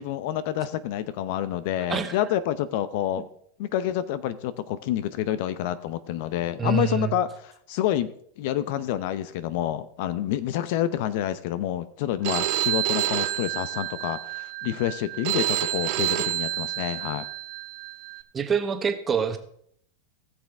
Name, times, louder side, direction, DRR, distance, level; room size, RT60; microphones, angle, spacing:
voice 1, 0.0-3.2 3.6-8.1 8.4-17.3, left 11 dB, 60° left, 14 dB, 0.7 m, -28 dB
voice 2, 6.6-7.1 18.3-19.4, right 6 dB, 25° right, 8 dB, 1.3 m, -26 dB
Telephone, 12.2-18.2, right 15 dB, 60° right, 0.8 m, -29 dB
18.5 x 6.4 x 3.5 m, 0.67 s
hypercardioid pair, 105°, 0 cm